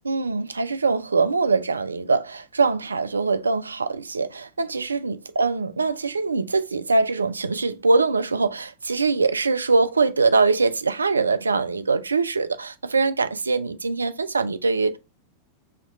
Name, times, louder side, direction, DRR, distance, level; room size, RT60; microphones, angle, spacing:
voice 1, 0.0-15.0, right 4 dB, 75° right, 0.4 m, -23 dB
4.4 x 2.3 x 4.0 m
figure-of-eight pair, 90°, 0 cm